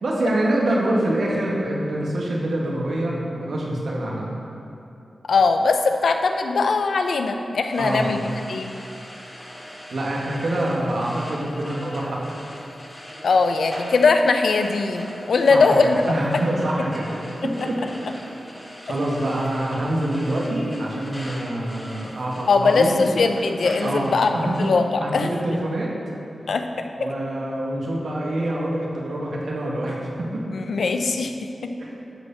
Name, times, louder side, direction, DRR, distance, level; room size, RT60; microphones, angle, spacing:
voice 1, 0.0-4.3 7.8-8.1 9.9-12.2 15.5-17.1 17.4-17.8 18.1-18.4 18.8-23.0 23.8-24.7 25.0-25.9 27.0-30.4 31.8-32.0, right 1 dB, 75° right, -3 dB, 1.8 m, -25 dB
voice 2, 5.3-8.2 8.5-8.7 13.2-16.0 22.5-24.3 24.6-24.8 25.1-25.3 26.5-26.9 30.5-31.3 31.6-31.7, left 4 dB, 80° left, 6 dB, 0.6 m, -20 dB
sound 1, 7.7-24.7, equal, 15° left, 1.9 m, -41 dB
11.0 x 4.3 x 7.1 m, 2.8 s
wide cardioid pair, 75°, 0 cm